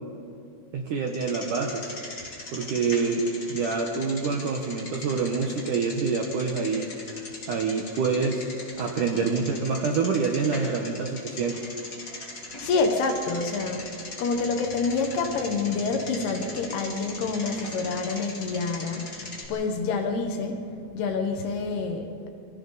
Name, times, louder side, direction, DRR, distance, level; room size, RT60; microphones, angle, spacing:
voice 1, 0.7-1.9 2.5-6.9 7.5-8.5 8.8-11.5, right 4 dB, 70° right, 2 dB, 2.1 m, -26 dB
Bicycle, 1.1-19.5, left 2 dB, 25° left, 3.1 m, -40 dB
voice 2, 12.6-13.9 14.2-20.6 20.9-22.1, left 4 dB, 70° left, 5 dB, 3.3 m, -27 dB
29.5 x 23.5 x 4.1 m, 2.6 s
omnidirectional pair, 5.1 m